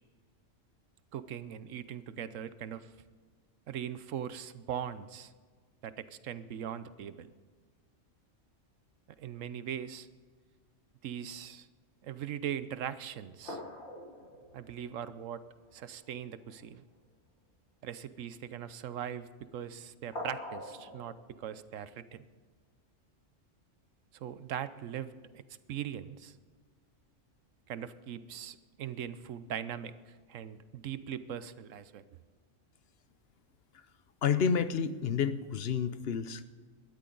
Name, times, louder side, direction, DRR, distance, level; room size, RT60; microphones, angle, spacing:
voice 1, 1.1-2.9 3.7-5.3 5.8-7.3 9.2-10.1 11.0-11.7 12.0-13.6 14.5-15.4 15.7-16.8 17.8-22.2 24.1-25.4 25.7-26.4 27.7-32.0, right 9 dB, 80° right, 14 dB, 1.1 m, -40 dB
sound 1, 12.3-12.4 13.0-13.1 13.4-15.7 16.0-16.1 16.5-16.7 20.1-21.2, left 1 dB, 85° left, 5.5 m, -44 dB
voice 2, 34.2-36.4, left 7 dB, 55° left, 12 dB, 0.9 m, -30 dB
18.5 x 13.0 x 3.9 m, 1.5 s
omnidirectional pair, 1.3 m